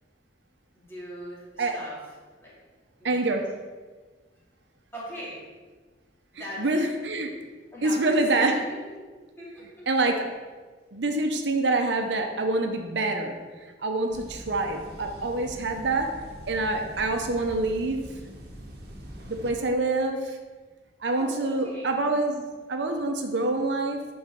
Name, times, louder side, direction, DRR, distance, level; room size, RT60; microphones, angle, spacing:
voice 1, 0.7-2.0 2.4-2.5 3.0-3.3 4.9-5.4 6.3-6.7 7.7-9.0 9.4-9.9 21.1-21.9, equal, 15° left, -7 dB, 2.4 m, -40 dB
voice 2, 3.0-3.5 6.6-7.4 7.8-8.6 9.9-10.3 10.9-13.4 13.8-16.2 16.5-18.1 19.3-20.4 21.0-22.4 22.7-24.1, right 2 dB, 75° right, 4 dB, 0.8 m, -26 dB
sound 1, 14.1-19.5, equal, 55° right, 1.2 m, -43 dB
11.5 x 4.3 x 3.6 m, 1.4 s
head